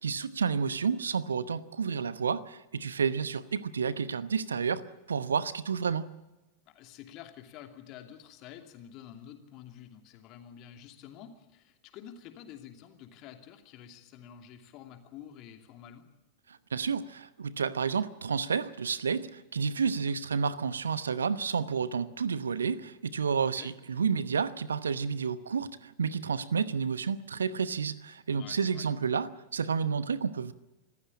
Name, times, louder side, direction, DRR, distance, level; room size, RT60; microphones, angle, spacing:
voice 1, 0.0-6.1 16.7-30.5, right 6 dB, 70° right, 16 dB, 0.9 m, -30 dB
voice 2, 6.7-16.1 23.5-23.7 28.3-28.9, left 10 dB, 40° left, 5 dB, 2.7 m, -49 dB
25.5 x 15.0 x 8.7 m, 1.0 s
figure-of-eight pair, 90°, 0 cm